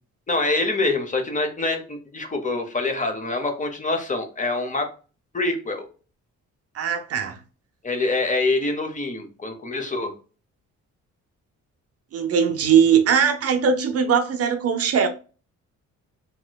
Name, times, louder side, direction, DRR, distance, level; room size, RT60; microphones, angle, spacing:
voice 1, 0.3-4.9 5.3-5.9 7.8-10.1, left 2 dB, 25° left, 0.7 m, -25 dB
voice 2, 6.7-7.4 12.1-15.1, right 7 dB, 50° right, 0.5 m, -20 dB
3.0 x 2.9 x 2.3 m
cardioid pair, 90°, 30 cm